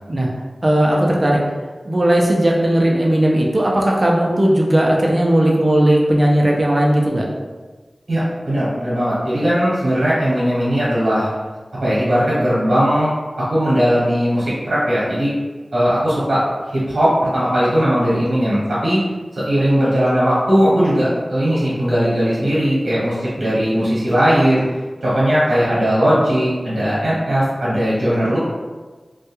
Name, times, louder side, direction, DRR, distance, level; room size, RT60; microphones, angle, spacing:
voice 1, 0.6-1.4 1.8-7.3, right 1 dB, 40° right, -2 dB, 0.4 m, -16 dB
voice 2, 8.1-11.3 11.8-13.1 13.5-15.3 15.7-19.0 19.4-24.6 25.0-28.4, equal, 90° right, -9 dB, 0.9 m, -18 dB
2.2 x 2.2 x 2.9 m, 1.3 s
wide cardioid pair, 55°, 0 cm